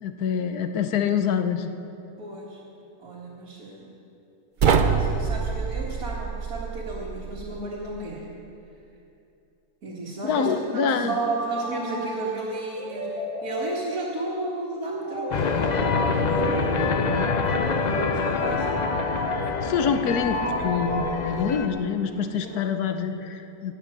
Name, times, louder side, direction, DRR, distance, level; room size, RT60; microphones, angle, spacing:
voice 1, 0.0-1.7 10.2-11.1 19.6-23.7, left 6 dB, 90° left, 8 dB, 1.3 m, -26 dB
voice 2, 2.2-2.6 3.0-3.9 4.6-8.3 9.8-17.1 17.8-18.9 22.4-22.7, right 2 dB, 70° right, -7 dB, 2.3 m, -33 dB
sound 1, 4.6-7.7, right 6 dB, 55° right, 0.5 m, -25 dB
sound 2, 11.1-21.8, equal, 20° right, 1.5 m, -32 dB
sound 3, 15.3-21.7, left 5 dB, 55° left, 0.4 m, -26 dB
18.5 x 6.5 x 7.4 m, 2.7 s
omnidirectional pair, 1.6 m